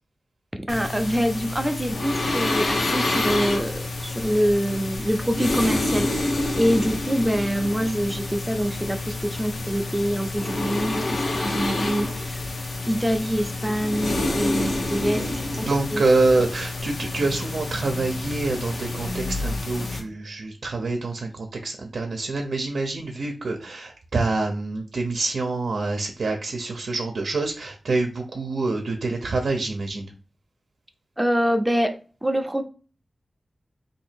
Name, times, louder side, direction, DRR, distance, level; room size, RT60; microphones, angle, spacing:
voice 1, 0.5-12.5 12.9-15.2 15.6-16.0 31.2-32.6, equal, 10° right, 6 dB, 0.5 m, -25 dB
sound 1, 0.7-20.0, left 2 dB, 80° left, 0.9 m, -28 dB
voice 2, 15.0-30.1, right 3 dB, 80° right, 3 dB, 0.6 m, -26 dB
2.8 x 2.7 x 4.4 m, 0.36 s
cardioid pair, 60°, 0 cm